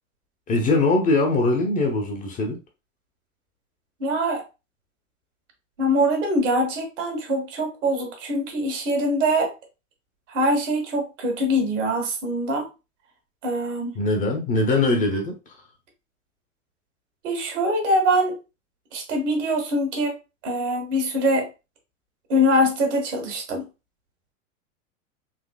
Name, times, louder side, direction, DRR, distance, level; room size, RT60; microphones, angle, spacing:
voice 1, 0.5-2.6 14.0-15.3, left 2 dB, 20° left, 3 dB, 0.7 m, -21 dB
voice 2, 4.0-4.4 5.8-9.5 10.3-12.7 13.4-13.9 17.2-18.4 18.9-20.2 20.4-21.5 22.3-23.7, equal, 65° right, 3 dB, 1.7 m, -23 dB
4.0 x 2.8 x 2.2 m, 0.28 s
hypercardioid pair, 100°, 41 cm